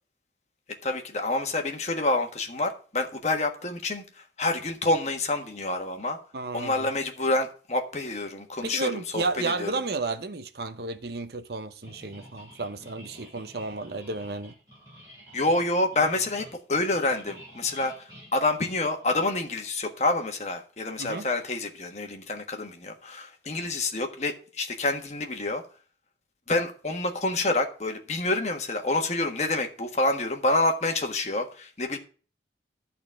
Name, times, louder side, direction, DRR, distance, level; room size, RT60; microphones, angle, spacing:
voice 1, 0.8-6.2 6.5-9.7 15.3-25.6 26.5-32.0, left 2 dB, 40° left, 1.5 m, -28 dB
voice 2, 6.3-6.9 8.6-14.5 21.0-21.3, right 3 dB, 65° right, 0.8 m, -32 dB
sound 1, 11.8-19.3, equal, 20° right, 6.9 m, -50 dB
12.0 x 4.2 x 7.4 m
head